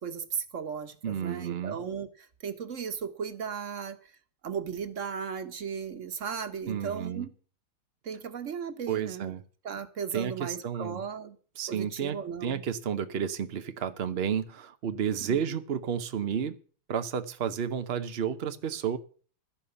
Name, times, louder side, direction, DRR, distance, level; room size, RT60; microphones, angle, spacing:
voice 1, 0.0-4.1 4.4-7.3 8.0-9.3 9.6-11.4 11.7-12.6 15.2-15.4, right 7 dB, 40° right, 9 dB, 1.3 m, -36 dB
voice 2, 1.0-1.8 6.7-7.3 8.9-9.4 10.1-11.0 11.6-16.6 16.9-19.0, right 8 dB, 80° right, 10 dB, 0.5 m, -31 dB
12.5 x 10.5 x 6.9 m, 0.42 s
omnidirectional pair, 2.3 m